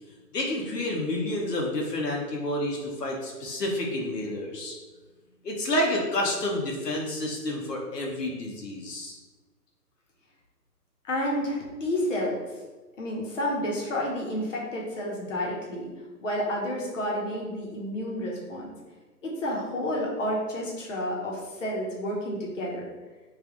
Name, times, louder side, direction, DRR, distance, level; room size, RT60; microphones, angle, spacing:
voice 1, 0.3-4.7 5.4-9.1, left 1 dB, 80° left, -1 dB, 0.9 m, -29 dB
voice 2, 11.0-12.4 13.0-15.9 16.2-18.7 19.2-22.8, left 1 dB, 50° left, -3 dB, 0.9 m, -30 dB
3.3 x 2.4 x 3.7 m, 1.2 s
hypercardioid pair, 175°, 48 cm